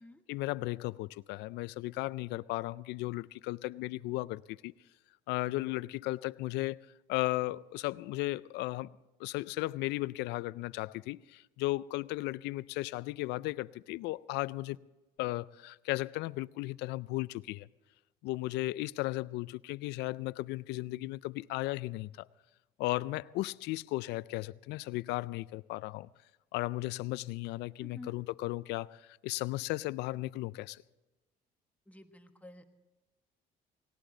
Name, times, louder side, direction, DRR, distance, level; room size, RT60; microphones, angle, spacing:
voice 1, 0.3-4.7 5.3-8.9 9.2-14.8 15.2-17.7 18.2-22.3 22.8-26.1 26.5-30.8, left 19 dB, 85° left, 0.4 m, -35 dB
voice 2, 27.8-28.2 31.9-32.6, left 2 dB, 10° left, 1.2 m, -50 dB
18.5 x 18.0 x 3.9 m
cardioid pair, 110°, 17 cm